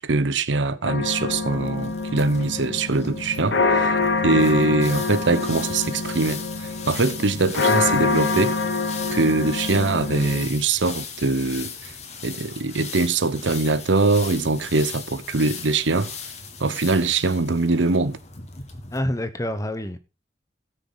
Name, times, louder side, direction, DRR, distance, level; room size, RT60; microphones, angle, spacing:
voice 1, 0.0-4.0 4.2-8.5 9.1-11.7 12.2-16.1 16.6-18.2, right 3 dB, 90° right, 0.9 m, -22 dB
sound 1, 0.8-10.5, left 3 dB, 75° left, 1.2 m, -25 dB
sound 2, 1.2-19.0, left 6 dB, 40° left, 1.7 m, -38 dB
voice 2, 18.9-20.0, left 1 dB, 20° left, 1.0 m, -27 dB
17.5 x 6.4 x 4.0 m
head